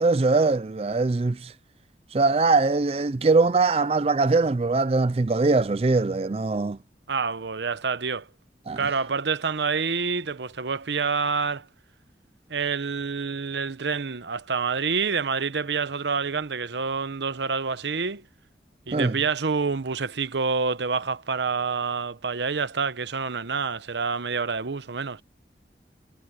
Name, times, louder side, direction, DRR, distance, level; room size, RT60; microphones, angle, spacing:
voice 1, 0.0-1.5 2.1-6.8 8.7-8.8 18.9-19.2, right 3 dB, 35° right, 0.4 m, -22 dB
voice 2, 7.1-8.3 8.8-11.7 12.5-18.2 18.9-25.2, right 5 dB, 80° right, 0.9 m, -27 dB
head